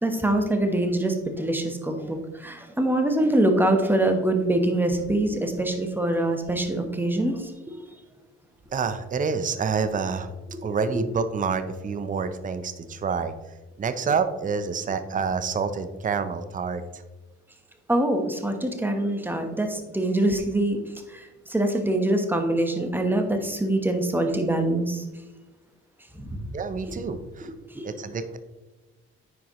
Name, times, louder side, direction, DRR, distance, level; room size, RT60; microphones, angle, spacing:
voice 1, 0.0-7.8 17.9-20.8 21.1-25.0 26.1-26.4 27.4-27.9, right 1 dB, 5° right, 5 dB, 1.1 m, -24 dB
voice 2, 8.7-10.3 10.6-13.3 13.8-17.0 26.5-27.5 27.8-28.4, right 5 dB, 25° right, 10 dB, 0.6 m, -28 dB
9.2 x 4.9 x 3.0 m, 1.1 s
cardioid pair, 90°, 30 cm